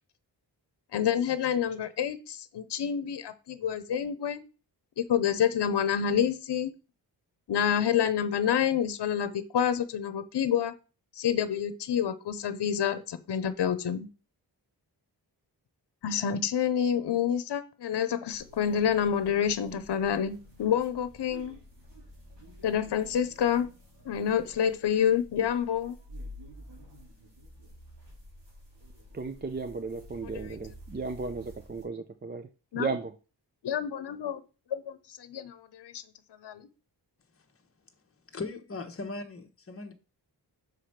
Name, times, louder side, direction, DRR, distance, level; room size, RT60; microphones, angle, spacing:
voice 1, 0.9-4.4 5.0-6.7 7.5-10.7 11.2-14.1 16.0-21.6 22.6-23.7 24.0-26.0 30.2-30.3 32.7-32.9 33.6-34.4 34.7-36.0 36.4-36.6, left 8 dB, 75° left, 0.8 m, -28 dB
sound 1, 18.3-31.8, equal, 90° right, 3.8 m, -50 dB
voice 2, 29.1-32.5 32.7-33.1, right 4 dB, 25° right, 0.5 m, -35 dB
voice 3, 38.3-39.9, left 3 dB, 35° left, 1.0 m, -38 dB
6.4 x 5.0 x 5.7 m
wide cardioid pair, 155°, 41 cm